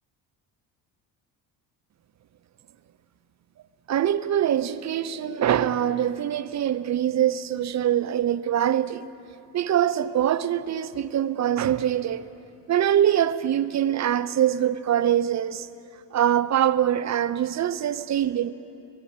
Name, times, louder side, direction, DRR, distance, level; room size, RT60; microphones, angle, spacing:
voice 1, 3.9-9.1 9.5-12.3 12.7-15.7 16.1-18.5, right 10 dB, 40° right, 0.6 m, -23 dB
22.5 x 8.0 x 7.5 m
supercardioid pair, 75°, 44 cm